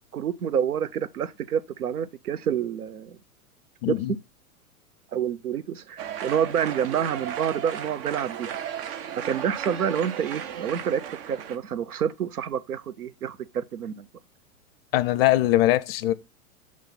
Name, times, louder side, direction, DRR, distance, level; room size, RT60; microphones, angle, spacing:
voice 1, 0.0-3.2 3.9-4.0 5.1-8.6 9.2-14.1, right 8 dB, 85° right, 0.6 m, -28 dB
voice 2, 3.8-4.1 14.9-16.1, left 15 dB, 45° left, 0.5 m, -21 dB
sound 1, 6.0-11.6, right 9 dB, 40° right, 0.7 m, -35 dB
6.8 x 3.1 x 5.7 m
hypercardioid pair, 105°, 43 cm